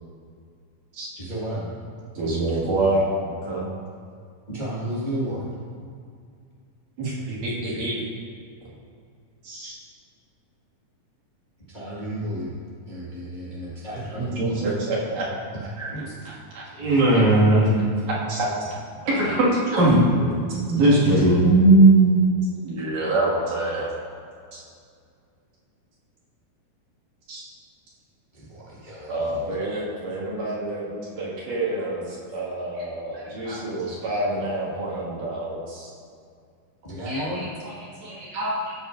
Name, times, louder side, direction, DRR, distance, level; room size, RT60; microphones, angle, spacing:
voice 1, 1.2-1.6 4.5-5.5 11.7-12.5 12.9-14.6 15.9-16.1 16.6-16.9 17.3-17.4 17.7-17.9 18.9-19.3 21.0-21.3 28.3-29.4 36.8-37.5, equal, 25° left, -8 dB, 1.2 m, -33 dB
voice 2, 2.2-3.7 7.0-8.0 9.4-9.8 14.2-15.3 15.8-15.9 16.3-16.7 17.1-17.4 18.3-18.5 19.1-19.4 20.4-22.2 22.6-23.9 24.5-24.6 27.3-27.4 29.1-35.9 38.1-38.2, right 3 dB, 85° right, -8 dB, 3.8 m, -24 dB
voice 3, 16.7-17.7 19.1-19.5 19.7-20.4 20.7-21.4 33.1-33.6 37.1-37.5 38.0-38.7, right 1 dB, 70° right, -6 dB, 3.4 m, -20 dB
12.5 x 8.0 x 2.6 m, 2.2 s
omnidirectional pair, 3.6 m